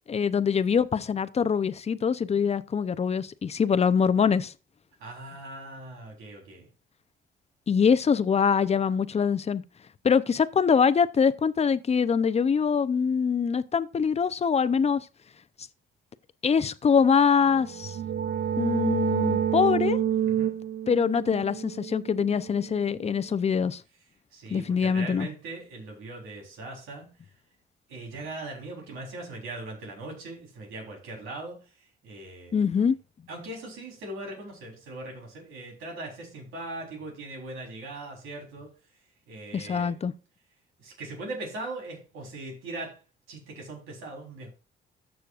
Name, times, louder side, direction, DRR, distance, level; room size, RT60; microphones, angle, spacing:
voice 1, 0.1-4.5 7.7-9.6 10.0-15.0 16.4-18.0 18.6-20.0 20.9-23.8 24.5-25.3 32.5-33.0 39.5-40.1, left 6 dB, 30° left, 0.6 m, -24 dB
voice 2, 5.0-6.7 20.2-20.6 24.3-27.1 27.9-32.5 33.3-38.7 39.3-40.0 40.8-43.0 43.3-44.5, right 2 dB, 90° right, 3.8 m, -40 dB
sound 1, 17.5-23.0, right 9 dB, 60° right, 0.7 m, -29 dB
14.0 x 6.4 x 2.5 m
cardioid pair, 90°, 20 cm